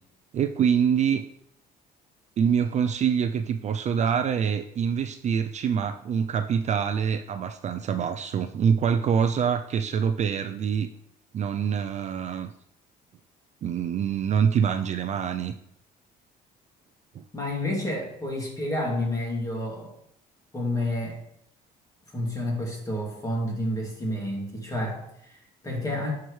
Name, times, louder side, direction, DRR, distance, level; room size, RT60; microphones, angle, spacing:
voice 1, 0.3-1.2 2.4-10.9 11.3-12.5 13.6-15.6 17.1-17.2, right 7 dB, 45° right, 8 dB, 0.4 m, -25 dB
voice 2, 17.3-19.9 20.5-21.2 22.1-26.1, left 1 dB, 20° left, -1 dB, 2.5 m, -30 dB
10.5 x 4.7 x 3.2 m, 0.75 s
cardioid pair, 110°, 17 cm